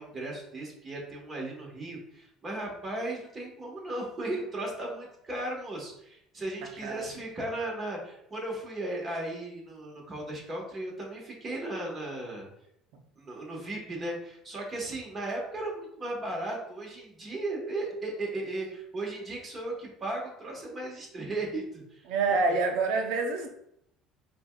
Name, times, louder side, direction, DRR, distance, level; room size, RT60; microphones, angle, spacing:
voice 1, 0.0-12.5 13.2-22.0 22.4-22.5, right 2 dB, 30° right, -2 dB, 1.3 m, -36 dB
voice 2, 22.1-23.5, right 3 dB, 80° right, 4 dB, 0.6 m, -27 dB
5.0 x 2.3 x 2.3 m, 0.76 s
supercardioid pair, 100°, 0 cm